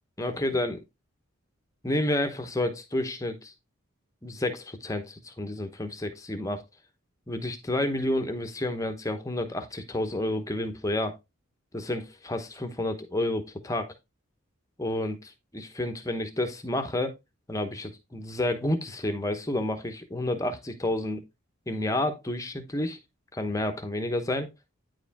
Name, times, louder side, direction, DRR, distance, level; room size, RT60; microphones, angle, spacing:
voice 1, 0.2-0.8 1.8-3.5 4.2-6.6 7.3-11.2 11.7-13.9 14.8-17.1 17.5-21.2 21.7-23.0 23.3-24.5, left 1 dB, 15° left, 0.9 m, -30 dB
9.6 x 4.9 x 3.5 m
head